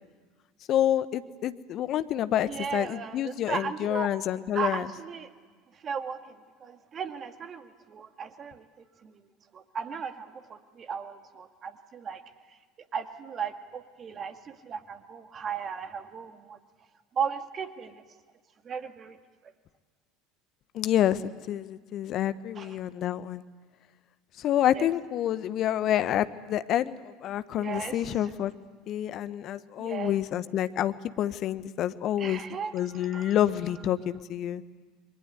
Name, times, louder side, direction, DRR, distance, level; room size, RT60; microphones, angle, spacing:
voice 1, 0.7-4.9 20.7-23.4 24.4-28.5 28.9-32.4 32.7-34.6, left 11 dB, 50° left, 14 dB, 1.0 m, -28 dB
voice 2, 2.5-4.1 4.5-5.3 5.8-8.6 9.0-9.2 9.5-12.2 12.9-16.6 17.1-18.0 18.6-19.2 22.6-22.7 24.7-24.9 27.5-28.0 29.8-30.2 32.2-33.3, right 6 dB, 35° right, 8 dB, 2.0 m, -36 dB
29.0 x 22.5 x 8.2 m, 1.4 s
figure-of-eight pair, 70°, 0 cm